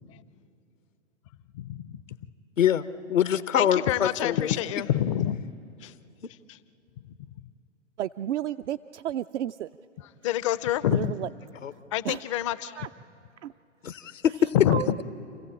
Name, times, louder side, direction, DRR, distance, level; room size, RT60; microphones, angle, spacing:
voice 1, 1.5-2.0 3.6-5.5 5.8-5.9 6.5-6.6 10.0-11.1 11.9-12.9 14.5-14.8, left 11 dB, 25° left, 0.4 m, -27 dB
voice 2, 3.1-4.6 11.6-11.7 13.8-14.5, left 9 dB, 85° left, 0.9 m, -24 dB
voice 3, 8.0-9.7 10.9-11.3 12.1-12.2 12.8-12.9 13.4-13.5 14.7-15.0, right 11 dB, 65° right, 0.5 m, -32 dB
28.5 x 15.0 x 8.8 m
hypercardioid pair, 125°, 37 cm